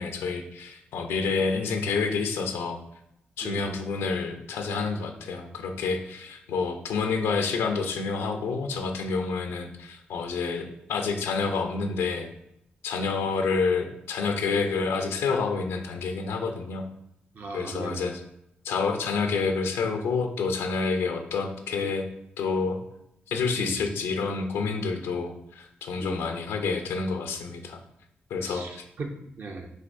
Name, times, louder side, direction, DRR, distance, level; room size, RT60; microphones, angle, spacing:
voice 1, 0.0-2.8 3.4-12.3 12.8-16.8 17.5-18.2 18.6-22.1 22.4-22.8 23.3-27.8 28.3-28.7, left 4 dB, 90° left, 5 dB, 0.6 m, -28 dB
voice 2, 17.3-18.0 23.5-23.8 26.0-26.3 28.4-29.7, right 3 dB, 55° right, 3 dB, 0.7 m, -38 dB
5.6 x 3.0 x 2.6 m, 0.80 s
supercardioid pair, 50°, 4 cm